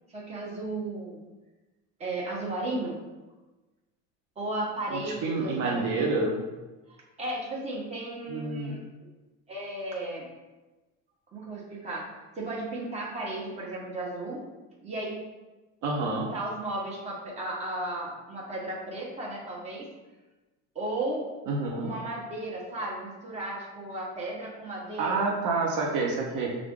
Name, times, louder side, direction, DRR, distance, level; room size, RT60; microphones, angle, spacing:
voice 1, 0.1-1.2 2.0-3.0 4.4-6.1 7.2-9.1 9.5-10.3 11.3-14.4 14.8-15.2 16.0-19.9 20.7-21.2 21.7-25.2, right 2 dB, 20° right, -4 dB, 1.0 m, -35 dB
voice 2, 4.9-6.4 8.3-8.8 15.8-16.3 21.5-21.9 25.0-26.5, right 3 dB, 60° right, 0 dB, 0.8 m, -28 dB
5.7 x 2.5 x 3.6 m, 1.1 s
cardioid pair, 145°, 33 cm